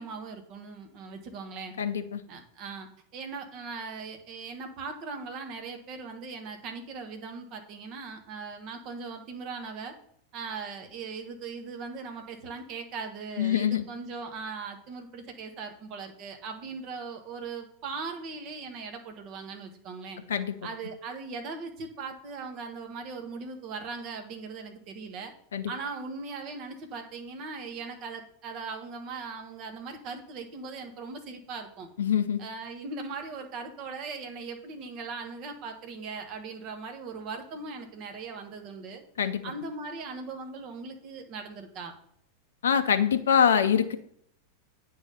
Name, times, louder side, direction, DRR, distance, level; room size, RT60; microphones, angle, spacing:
voice 1, 0.0-1.7 2.3-2.9 3.1-9.9 10.3-20.2 20.6-25.3 25.7-31.9 32.4-39.0 39.4-41.9, right 4 dB, 40° right, 5 dB, 1.4 m, -39 dB
voice 2, 1.8-2.2 13.4-13.8 20.3-20.5 25.5-25.7 32.0-32.4 39.2-39.4 42.6-44.0, left 8 dB, 65° left, 10 dB, 0.6 m, -24 dB
8.7 x 3.9 x 5.7 m, 0.66 s
figure-of-eight pair, 90°, 0 cm